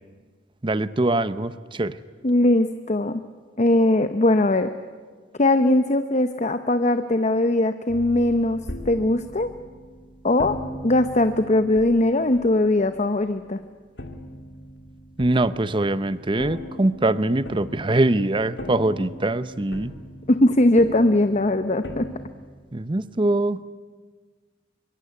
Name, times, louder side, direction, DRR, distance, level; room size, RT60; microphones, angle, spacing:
voice 1, 0.6-2.0 15.2-19.9 22.7-23.6, right 2 dB, 25° right, 14 dB, 0.8 m, -23 dB
voice 2, 2.2-3.2 3.6-4.7 5.4-8.6 8.9-9.5 10.2-10.6 10.8-13.6 20.3-22.1, left 1 dB, 40° left, 9 dB, 0.8 m, -20 dB
sound 1, 7.9-13.6 14.0-22.3, equal, 65° left, 2.4 m, -40 dB
24.5 x 23.5 x 9.7 m, 1.5 s
head